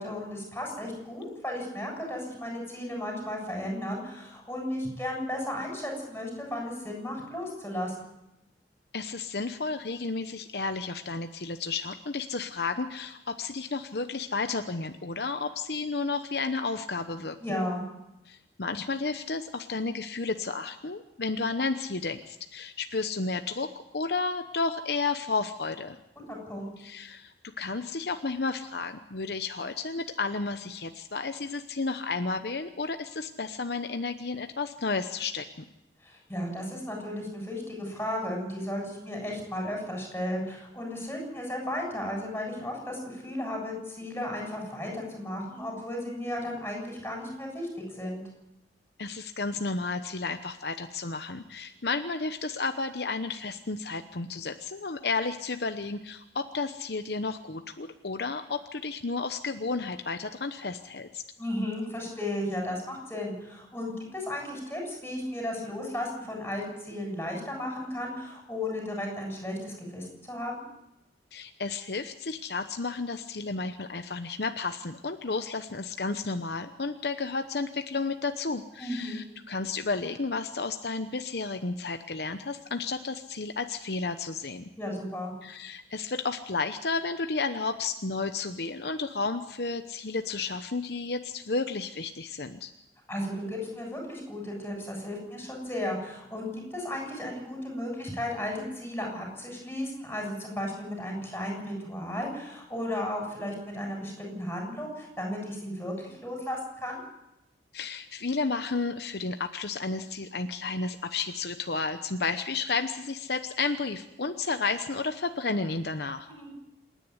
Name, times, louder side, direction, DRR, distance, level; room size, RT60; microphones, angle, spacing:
voice 1, 0.0-8.1 17.4-17.8 26.3-26.7 36.0-47.7 48.0-48.2 61.4-70.6 78.8-79.2 84.8-85.3 93.1-107.0 116.3-116.5, left 1 dB, 10° left, 0 dB, 7.5 m, -34 dB
voice 2, 8.9-17.4 18.3-26.0 26.8-35.6 49.0-61.2 71.3-84.7 85.4-92.7 107.7-116.3, left 4 dB, 65° left, 8 dB, 0.9 m, -32 dB
27.0 x 10.5 x 9.7 m, 0.88 s
head